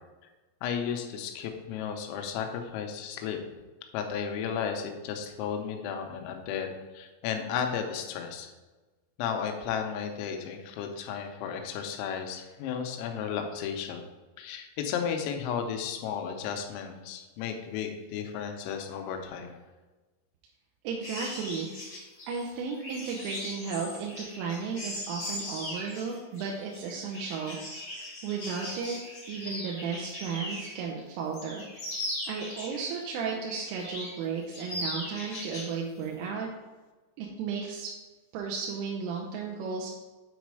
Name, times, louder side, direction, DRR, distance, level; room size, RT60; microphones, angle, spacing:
voice 1, 0.6-3.4 3.9-8.5 9.2-14.0 14.4-19.6, left 7 dB, 85° left, 5 dB, 3.5 m, -34 dB
voice 2, 20.8-22.0 22.3-27.6 28.2-29.0 29.3-31.6 32.2-36.5 37.2-37.9 38.3-39.9, right 5 dB, 85° right, -1 dB, 3.2 m, -34 dB
sound 1, 21.0-30.8 31.2-33.1 33.5-34.2 34.5-35.7 36.0-36.3, left 1 dB, 35° left, 1.2 m, -39 dB
8.3 x 4.1 x 4.7 m, 1.2 s
omnidirectional pair, 5.9 m